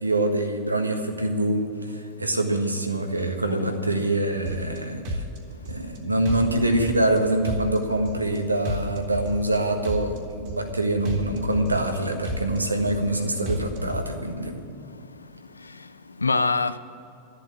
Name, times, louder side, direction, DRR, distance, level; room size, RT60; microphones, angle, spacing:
voice 1, 0.0-5.2 5.7-14.6, right 1 dB, 80° right, 1.5 m, -25 dB
voice 2, 3.5-4.1 5.4-5.9 14.7-16.8, left 3 dB, 80° left, 0.5 m, -29 dB
sound 1, 4.5-4.8 5.0-6.0 6.3-7.2 7.4-8.4 8.7-9.6 9.8-10.8 11.1-12.0 12.2-13.2 13.5-14.1, equal, 45° right, 2.4 m, -32 dB
13.0 x 8.2 x 9.5 m
figure-of-eight pair, 90°, 0 cm